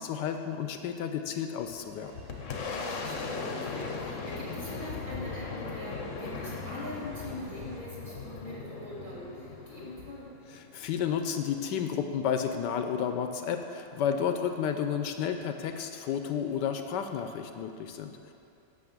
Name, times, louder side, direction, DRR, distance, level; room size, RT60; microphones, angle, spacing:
voice 1, 0.0-2.1 10.5-18.3, left 8 dB, 75° left, 7 dB, 1.1 m, -32 dB
Boom, 1.6-11.0, left 4 dB, 55° left, 0.9 m, -38 dB
sound 1, 1.9-7.8, right 2 dB, 75° right, 1.9 m, -53 dB
voice 2, 2.6-10.3, left 1 dB, 40° right, -6 dB, 2.3 m, -43 dB
9.2 x 6.1 x 7.3 m, 2.7 s
omnidirectional pair, 2.1 m